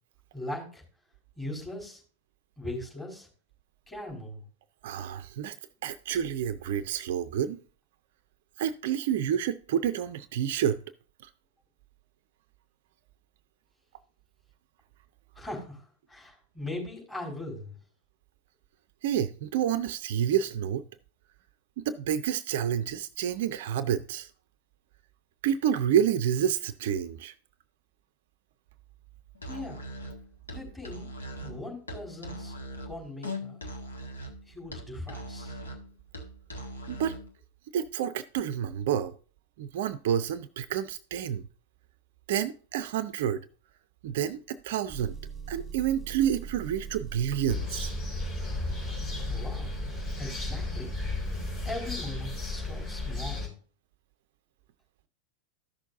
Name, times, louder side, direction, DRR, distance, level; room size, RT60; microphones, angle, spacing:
voice 1, 0.3-0.8 1.4-2.0 2.6-3.3 3.9-4.4 15.3-17.7 29.5-29.8 30.5-31.1 31.4-32.6 32.9-33.6 34.5-35.6 49.2-49.7 50.2-50.9 51.6-53.5, left 1 dB, 15° left, 4.3 m, -39 dB
voice 2, 4.8-5.6 5.8-7.6 8.6-10.8 11.2-11.3 19.0-20.8 21.8-24.3 25.4-27.3 36.9-37.2 37.7-39.1 39.6-41.4 42.3-43.4 44.0-45.2 45.5-47.9, right 9 dB, 55° right, 0.5 m, -29 dB
Musical instrument, 29.3-37.3, equal, 75° left, 1.6 m, -41 dB
Engine, 44.9-51.8, right 6 dB, 15° right, 1.3 m, -41 dB
sound 1, 47.5-53.5, left 3 dB, 35° left, 4.9 m, -34 dB
14.0 x 6.3 x 2.6 m
figure-of-eight pair, 90°, 0 cm